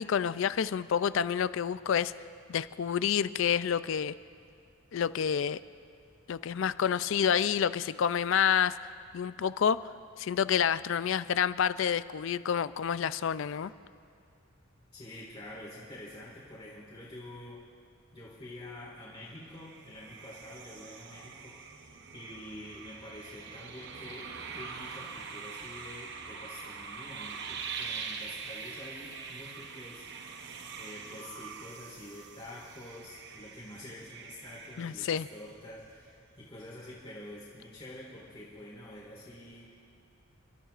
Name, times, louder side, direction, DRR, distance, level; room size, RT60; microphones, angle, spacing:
voice 1, 0.0-2.1 2.5-4.1 4.9-5.6 6.3-8.8 9.1-9.9 10.2-13.7 34.8-35.3, left 8 dB, 60° left, 15 dB, 0.3 m, -28 dB
voice 2, 14.9-17.6 18.1-30.1 30.8-39.9, left 1 dB, 25° left, -7 dB, 1.9 m, -47 dB
sound 1, 19.5-35.8, right 5 dB, 50° right, 0.8 m, -44 dB
29.5 x 13.0 x 2.5 m, 2.3 s
head